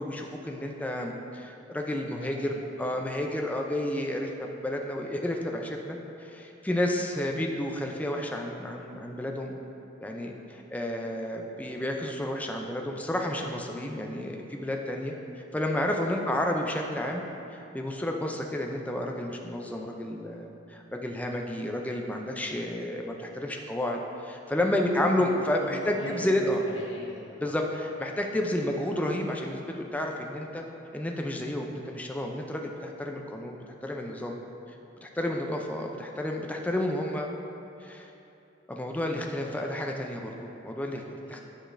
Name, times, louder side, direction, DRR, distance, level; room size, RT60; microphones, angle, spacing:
voice 1, 0.0-2.5 2.8-4.3 4.6-9.6 10.0-15.1 15.5-17.2 17.5-26.6 27.4-29.6 29.9-30.6 30.9-33.6 33.8-34.4 35.0-37.3 37.8-38.1 38.7-41.0 41.3-41.4, left 1 dB, 10° left, 1 dB, 0.4 m, -31 dB
voice 2, 2.1-2.9 16.3-16.5 24.6-25.3 25.5-27.6 39.3-40.1 41.2-41.4, left 1 dB, 90° left, -4 dB, 1.1 m, -44 dB
9.6 x 4.9 x 2.5 m, 2.8 s
head